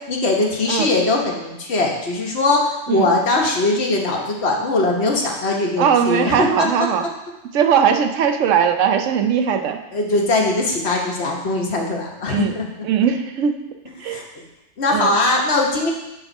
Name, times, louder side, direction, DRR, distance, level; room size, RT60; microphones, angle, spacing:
voice 1, 0.1-6.9 9.9-12.6 14.0-14.4 14.8-15.9, left 2 dB, 60° left, 0 dB, 1.3 m, -21 dB
voice 2, 5.8-7.0 7.5-9.8 12.3-12.5 12.8-13.6 14.0-14.2 14.9-15.1, right 7 dB, 80° right, 7 dB, 1.0 m, -19 dB
8.9 x 3.6 x 5.3 m, 0.96 s
omnidirectional pair, 1.3 m